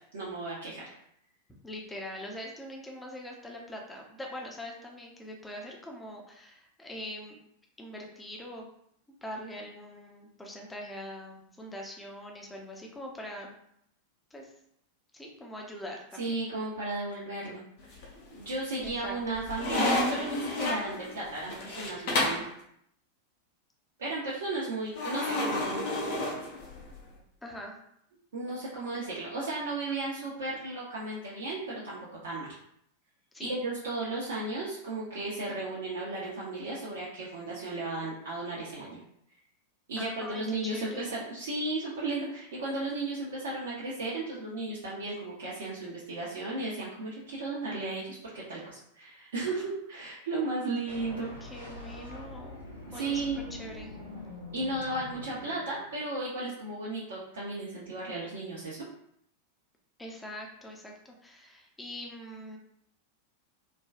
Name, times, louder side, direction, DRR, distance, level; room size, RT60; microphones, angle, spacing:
voice 1, 0.1-0.8 16.2-17.6 18.3-22.4 24.0-25.9 28.3-32.5 33.4-39.0 39.9-51.3 52.9-53.4 54.5-58.8, right 2 dB, 60° right, -7 dB, 0.6 m, -35 dB
voice 2, 1.6-7.4 7.8-8.7 9.2-13.6 14.3-14.5 15.1-16.4 18.8-19.4 27.4-27.8 33.3-33.5 40.0-41.2 49.4-49.6 51.4-52.6 52.9-54.0 60.0-62.6, left 1 dB, 10° left, 0 dB, 0.6 m, -43 dB
sound 1, 17.8-18.4 18.8-22.5 25.0-27.0, left 2 dB, 50° left, 0.6 m, -31 dB
sound 2, 50.9-56.0, left 2 dB, 85° left, 0.8 m, -44 dB
3.2 x 2.2 x 2.4 m, 0.71 s
figure-of-eight pair, 90°, 0 cm